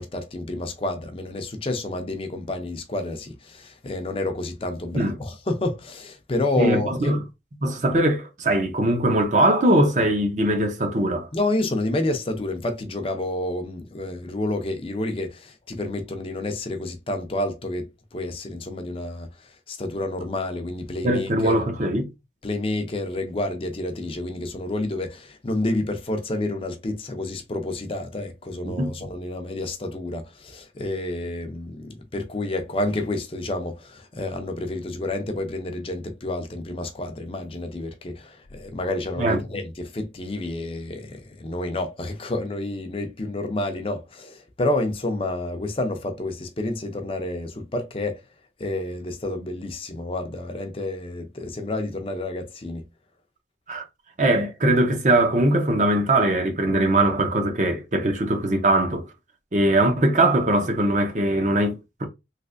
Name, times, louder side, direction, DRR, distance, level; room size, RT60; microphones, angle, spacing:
voice 1, 0.0-7.1 11.3-17.9 18.1-19.3 19.7-21.6 22.4-48.2 48.6-52.9, left 2 dB, 30° left, 0.5 m, -29 dB
voice 2, 6.6-7.2 7.6-11.3 21.0-22.1 28.6-28.9 39.2-39.4 53.7-53.9 54.2-59.1 59.5-62.1, right 1 dB, 40° right, 0.7 m, -21 dB
3.2 x 3.1 x 2.5 m
head